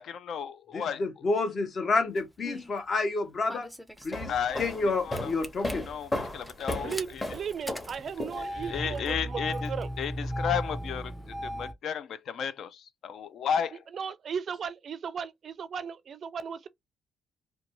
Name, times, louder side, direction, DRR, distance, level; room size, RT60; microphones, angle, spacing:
voice 1, 0.0-1.0 4.3-4.7 5.0-5.3 5.8-7.2 8.6-9.7 10.0-11.1 11.4-13.8, left 7 dB, 65° left, 0.4 m, -33 dB
voice 2, 0.7-3.7 4.0-4.3 4.6-5.9 6.8-6.9, left 3 dB, 50° left, 0.8 m, -29 dB
Engine starting, 2.2-2.7 3.5-4.9 5.2-5.7 6.4-11.7, equal, 5° left, 0.5 m, -36 dB
sound 1, 4.0-8.8, left 1 dB, 20° left, 0.9 m, -35 dB
voice 3, 6.8-9.9 13.9-16.7, right 7 dB, 55° right, 0.4 m, -36 dB
2.6 x 2.2 x 2.8 m
cardioid pair, 90°, 0 cm